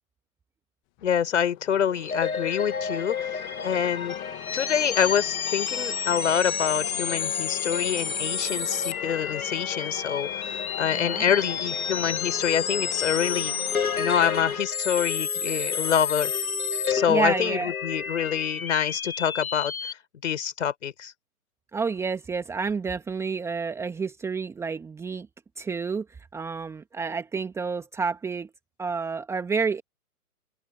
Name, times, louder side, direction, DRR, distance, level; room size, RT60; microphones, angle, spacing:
voice 1, 1.0-4.2 4.5-13.5 13.9-16.3 16.9-19.9 20.2-21.1, left 8 dB, 55° left, 5.9 m, -26 dB
sound 1, 1.0-14.6, left 29 dB, 20° left, 1.7 m, -42 dB
sound 2, 2.0-19.9, left 6 dB, 70° left, 2.0 m, -30 dB
voice 2, 10.9-11.4 17.1-17.7 21.7-25.3 25.6-26.1 26.3-28.5 28.8-29.8, right 5 dB, 5° right, 1.8 m, -29 dB
open air
figure-of-eight pair, 135°, 45 cm